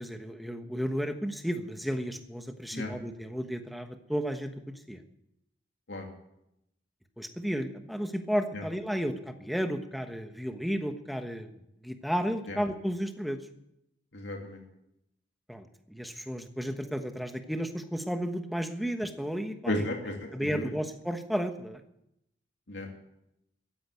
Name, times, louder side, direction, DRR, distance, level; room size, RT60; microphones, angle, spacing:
voice 1, 0.0-5.0 7.2-11.5 11.8-13.4 15.5-19.9 20.3-21.8, equal, ahead, 6 dB, 1.1 m, -33 dB
voice 2, 14.1-14.6 19.7-20.7 22.7-22.9, left 1 dB, 75° left, 1 dB, 2.7 m, -34 dB
14.5 x 10.0 x 8.4 m, 0.82 s
head